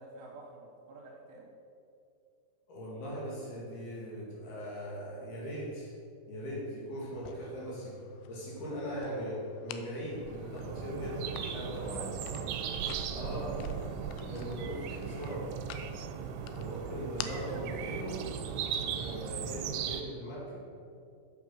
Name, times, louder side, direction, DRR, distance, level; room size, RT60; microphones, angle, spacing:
voice 1, 0.0-1.5 7.3-7.5 11.6-13.7 16.1-16.4, right 2 dB, 70° right, -2 dB, 2.8 m, -50 dB
voice 2, 2.7-5.9 6.3-7.9 8.3-12.1 13.1-13.7 14.3-15.6 16.4-18.2 18.8-20.6, equal, 60° left, -5 dB, 3.6 m, -39 dB
sound 1, 7.1-19.6, left 8 dB, 85° left, 2.6 m, -49 dB
sound 2, 10.1-20.0, right 8 dB, 90° right, 3.1 m, -38 dB
7.8 x 6.8 x 6.2 m, 2.5 s
omnidirectional pair, 5.6 m